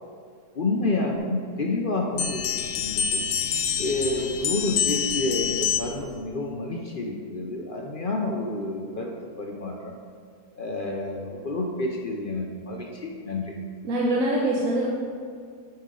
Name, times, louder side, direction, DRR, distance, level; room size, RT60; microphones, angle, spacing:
voice 1, 0.5-2.5 2.8-3.2 3.8-9.1 9.4-9.9 10.6-13.5, left 2 dB, 60° left, 0 dB, 0.5 m, -29 dB
sound 1, 2.2-6.1, left 8 dB, 80° left, 1.2 m, -27 dB
voice 2, 13.8-14.9, right 1 dB, 60° right, -4 dB, 1.2 m, -23 dB
10.0 x 5.7 x 3.7 m, 2.1 s
omnidirectional pair, 1.8 m